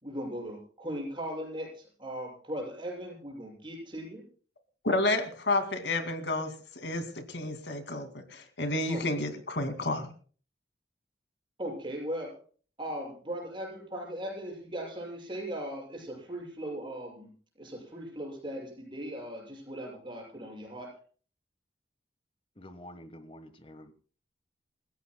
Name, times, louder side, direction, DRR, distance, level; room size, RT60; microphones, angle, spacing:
voice 1, 0.0-4.2 8.9-9.3 11.6-12.4 12.8-17.3 17.6-21.0, equal, 25° right, -1 dB, 6.5 m, -38 dB
voice 2, 4.8-10.1, left 2 dB, 75° left, 7 dB, 2.4 m, -31 dB
voice 3, 22.6-23.9, equal, 30° left, 11 dB, 1.3 m, -48 dB
29.0 x 15.5 x 2.2 m, 0.41 s
head